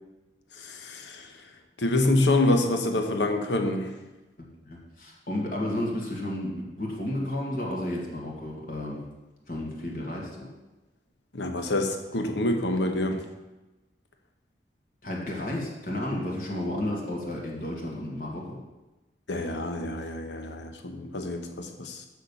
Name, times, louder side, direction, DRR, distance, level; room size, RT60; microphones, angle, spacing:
voice 1, 0.6-1.3 1.8-4.0 11.3-13.2 19.3-22.1, left 2 dB, 85° left, 5 dB, 1.0 m, -27 dB
voice 2, 4.4-9.0 9.5-10.5 15.0-18.6, left 1 dB, 50° left, -2 dB, 1.9 m, -32 dB
6.5 x 6.5 x 7.0 m, 1.1 s
head